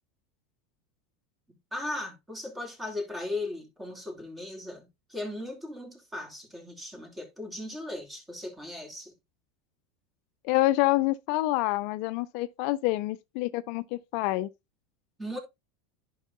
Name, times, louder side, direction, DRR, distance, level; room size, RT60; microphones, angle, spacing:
voice 1, 1.7-9.1 15.2-15.4, left 2 dB, 15° right, 2.8 m, -37 dB
voice 2, 10.4-14.5, left 18 dB, 60° left, 0.4 m, -27 dB
10.5 x 5.5 x 2.6 m
hypercardioid pair, 105°, 0 cm